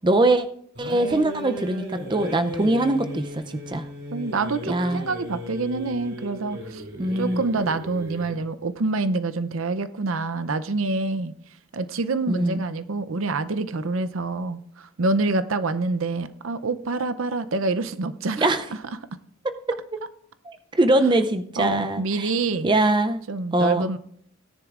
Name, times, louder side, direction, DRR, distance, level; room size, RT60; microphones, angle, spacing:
voice 1, 0.0-0.5 0.8-3.8 4.7-5.1 7.0-7.4 12.3-12.6 18.4-18.6 19.4-19.8 20.4-22.3 22.6-23.2 23.5-23.9, right 2 dB, 25° right, 9 dB, 0.5 m, -22 dB
sound 1, 0.7-8.4, equal, 55° right, 2.9 m, -36 dB
voice 2, 4.1-6.8 7.2-11.3 11.7-18.5 21.6-22.7 23.3-24.0, right 3 dB, 80° right, 13 dB, 0.6 m, -26 dB
17.0 x 10.0 x 2.5 m, 0.64 s
head